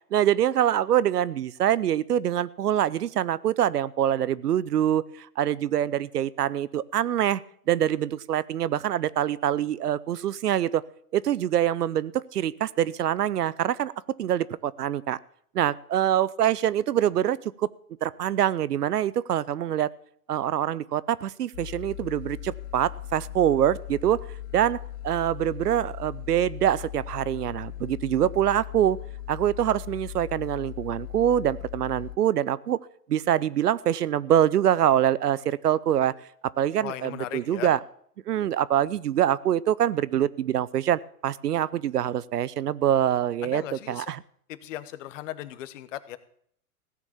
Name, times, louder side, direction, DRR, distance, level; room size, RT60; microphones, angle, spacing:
voice 1, 0.1-7.4 7.7-10.8 11.1-13.9 14.2-15.2 15.5-17.7 18.0-19.9 20.3-24.2 24.5-24.8 25.0-29.0 29.3-32.8 33.1-36.2 36.6-37.8 38.3-44.2, right 11 dB, 80° right, 20 dB, 0.7 m, -25 dB
sound 1, 21.5-32.2, left 12 dB, 80° left, 0.7 m, -39 dB
voice 2, 36.8-37.7 43.4-44.1 44.5-46.2, left 13 dB, 55° left, 14 dB, 1.2 m, -37 dB
16.0 x 7.2 x 7.1 m, 0.64 s
hypercardioid pair, 110°, 46 cm